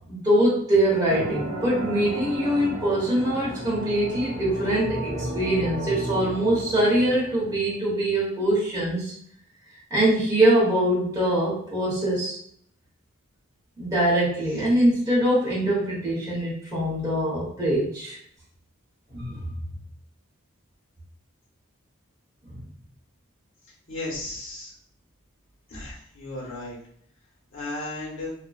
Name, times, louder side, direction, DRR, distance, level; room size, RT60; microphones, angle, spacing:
voice 1, 0.1-9.1 9.9-12.4 13.8-18.2 19.1-19.5 22.5-22.6, right 1 dB, 15° right, -8 dB, 0.9 m, -23 dB
sound 1, 1.0-7.8, right 1 dB, 75° right, 0.5 m, -33 dB
voice 2, 23.9-24.7 25.7-26.8 27.5-28.3, left 2 dB, 60° left, -5 dB, 1.0 m, -34 dB
2.4 x 2.2 x 2.3 m, 0.64 s
head